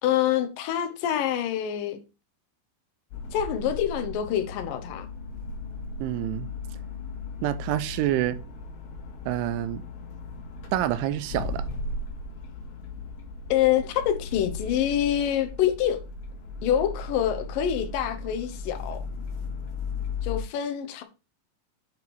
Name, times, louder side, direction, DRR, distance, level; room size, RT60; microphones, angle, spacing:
voice 1, 0.0-2.0 3.3-5.1 13.5-16.0 16.6-19.0 20.2-21.0, left 10 dB, 90° left, 1.9 m, -26 dB
sound 1, 3.1-20.4, left 3 dB, 60° left, 3.2 m, -36 dB
voice 2, 6.0-6.5 7.4-8.4 9.3-9.8 10.7-11.7, right 13 dB, 85° right, 3.2 m, -27 dB
8.0 x 5.2 x 4.6 m
omnidirectional pair, 5.5 m